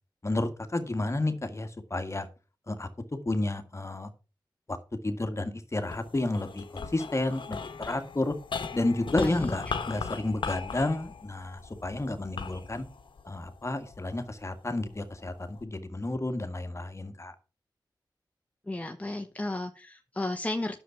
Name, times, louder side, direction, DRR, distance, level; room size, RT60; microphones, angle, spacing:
voice 1, 0.2-2.3 2.7-2.9 3.3-4.1 4.7-4.8 5.0-8.3 8.7-12.8 13.3-17.4, left 2 dB, 35° left, 1.8 m, -31 dB
sound 1, 5.8-14.3 14.9-15.6, left 5 dB, 85° left, 1.0 m, -38 dB
voice 2, 9.2-9.5 18.7-20.8, left 2 dB, 15° left, 1.2 m, -33 dB
10.0 x 7.0 x 5.8 m
cardioid pair, 50°, 8 cm